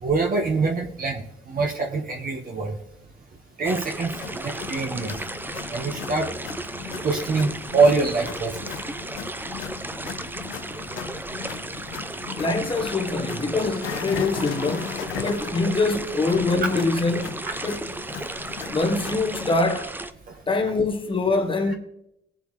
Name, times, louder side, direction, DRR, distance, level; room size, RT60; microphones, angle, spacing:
voice 1, 0.0-2.8 3.6-5.2 5.7-6.3 7.0-8.6 17.6-17.7, right 4 dB, 45° right, 1.5 m, -24 dB
sound 1, 3.6-20.1, right 2 dB, 10° right, 0.7 m, -34 dB
sound 2, 4.0-19.6, left 9 dB, 80° left, 1.0 m, -38 dB
voice 2, 12.4-17.8 18.7-19.9 20.5-21.7, left 3 dB, 25° left, 1.4 m, -24 dB
18.5 x 7.7 x 3.3 m
cardioid pair, 90°, 20 cm